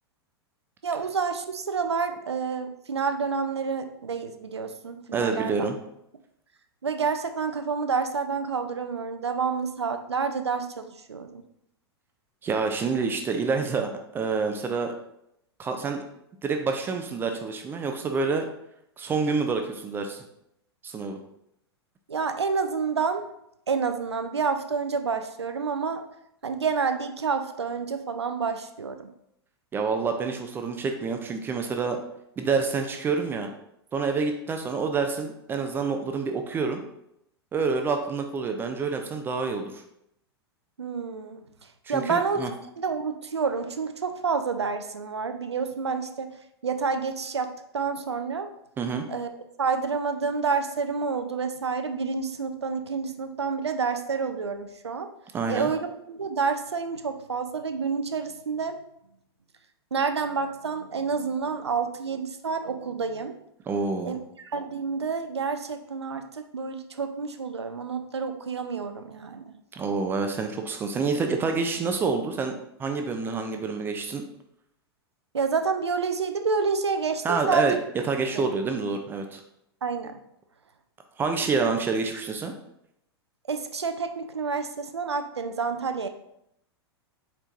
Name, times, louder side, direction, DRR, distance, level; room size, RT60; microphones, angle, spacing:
voice 1, 0.8-5.6 6.8-11.4 22.1-23.2 23.7-26.0 26.4-29.1 40.8-42.4 42.8-46.3 46.6-48.5 49.1-49.3 49.6-55.1 55.5-58.8 59.9-63.3 64.1-69.5 75.3-77.8 78.3-78.5 79.8-80.2 81.6-81.7 83.5-86.1, right 5 dB, 75° right, 8 dB, 0.4 m, -29 dB
voice 2, 5.1-5.8 12.4-14.9 15.6-16.0 16.4-18.4 19.0-20.2 20.8-21.2 29.7-32.0 32.4-33.5 33.9-36.8 37.5-39.8 41.9-42.5 48.8-49.0 55.3-55.7 63.7-64.2 69.7-74.2 77.2-77.8 78.1-79.4 81.2-82.5, right 4 dB, 15° right, 5 dB, 0.4 m, -27 dB
4.4 x 4.3 x 2.5 m, 0.78 s
figure-of-eight pair, 95°, 14 cm